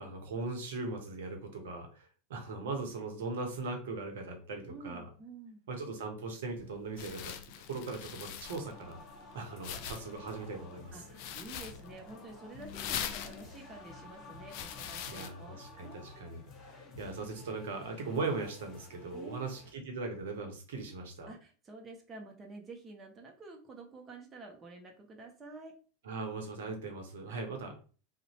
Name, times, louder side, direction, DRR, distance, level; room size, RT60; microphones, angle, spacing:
voice 1, 0.0-5.1 5.7-7.3 7.7-9.0 9.3-11.0 15.1-16.4 17.0-21.3 26.1-27.8, right 3 dB, 70° right, 4 dB, 0.7 m, -39 dB
voice 2, 4.7-5.6 10.9-16.4 19.1-19.4 21.3-25.7 27.3-27.4, right 3 dB, 25° right, 1 dB, 0.6 m, -49 dB
sound 1, 6.5-15.3, left 9 dB, 60° left, 0.3 m, -43 dB
sound 2, 8.4-19.7, left 2 dB, 45° left, 0.9 m, -52 dB
2.6 x 2.1 x 2.9 m, 0.38 s
hypercardioid pair, 85°, 0 cm